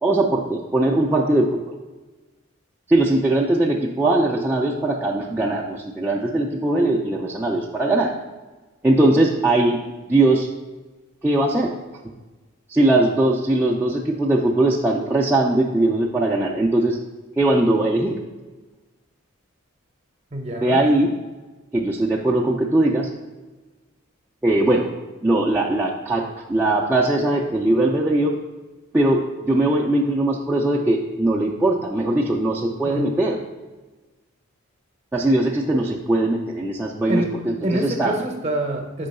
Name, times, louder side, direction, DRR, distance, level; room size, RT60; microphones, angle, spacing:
voice 1, 0.0-1.7 2.9-8.1 8.8-9.8 10.1-10.5 11.2-11.7 12.7-17.0 17.4-18.2 20.6-21.1 21.7-23.1 24.4-24.9 25.2-28.3 28.9-33.4 35.1-38.1, right 2 dB, 10° right, -5 dB, 0.3 m, -20 dB
voice 2, 20.3-20.8 32.8-33.1 37.1-37.3 37.6-39.1, right 1 dB, 30° right, 3 dB, 0.7 m, -26 dB
5.3 x 3.7 x 5.3 m, 1.2 s
head